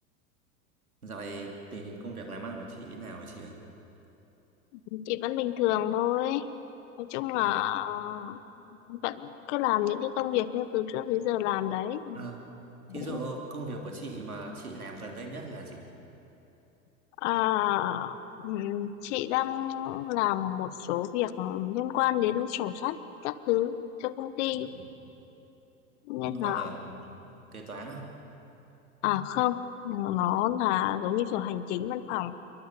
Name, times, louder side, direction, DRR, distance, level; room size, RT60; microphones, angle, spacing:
voice 1, 1.0-3.6 7.4-7.8 12.1-12.5 12.9-15.9 24.6-24.8 26.2-28.0, right 2 dB, 90° right, 1 dB, 3.4 m, -40 dB
voice 2, 4.9-6.5 7.0-8.4 8.9-12.2 12.9-13.2 17.2-23.0 23.2-24.7 26.1-26.7 29.0-32.3, left 13 dB, 55° left, 14 dB, 1.3 m, -29 dB
28.5 x 23.0 x 7.2 m, 3.0 s
hypercardioid pair, 85°, 42 cm